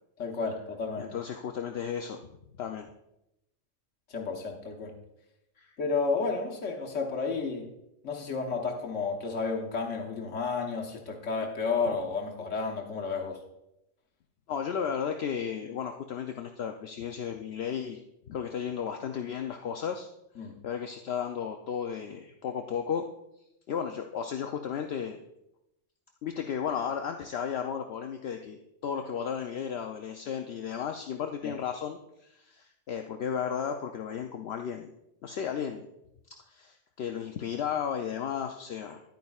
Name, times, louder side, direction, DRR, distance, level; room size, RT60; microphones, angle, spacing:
voice 1, 0.2-1.1 4.1-5.0 5.8-7.7 8.0-13.4 20.4-20.6 31.4-31.5, left 4 dB, 85° left, 1 dB, 1.4 m, -32 dB
voice 2, 1.0-2.2 2.6-2.9 5.6-5.8 14.5-18.0 18.3-20.1 20.6-23.1 23.7-25.2 26.2-28.6 28.8-34.9 35.2-35.9 36.5-39.0, left 7 dB, 65° left, 5 dB, 0.8 m, -34 dB
10.5 x 9.4 x 2.3 m, 0.85 s
omnidirectional pair, 1.2 m